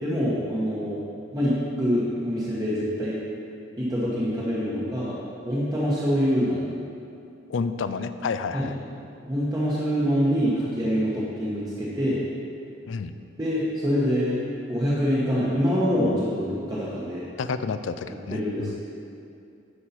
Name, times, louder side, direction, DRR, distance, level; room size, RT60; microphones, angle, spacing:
voice 1, 0.0-1.0 1.3-3.2 3.8-5.2 5.4-6.7 8.5-8.7 9.3-12.2 13.4-14.4 14.7-17.2 18.1-18.8, equal, 20° right, -8 dB, 1.1 m, -25 dB
voice 2, 7.5-8.7 12.9-13.1 17.4-18.8, left 5 dB, 80° left, 11 dB, 0.4 m, -30 dB
9.8 x 4.7 x 5.7 m, 2.5 s
head